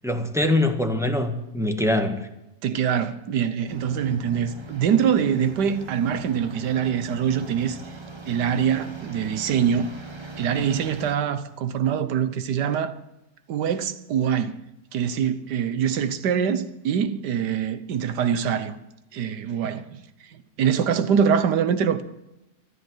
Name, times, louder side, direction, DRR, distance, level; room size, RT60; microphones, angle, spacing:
voice 1, 0.0-2.2, left 1 dB, ahead, 1.5 m, -23 dB
voice 2, 2.6-7.8 8.3-9.9 10.4-13.0 13.5-14.6 14.9-18.8 19.1-20.0 20.3-22.0, right 8 dB, 85° right, 1.6 m, -24 dB
sound 1, 3.7-11.2, right 2 dB, 20° right, 1.0 m, -40 dB
14.5 x 12.0 x 8.0 m
omnidirectional pair, 1.8 m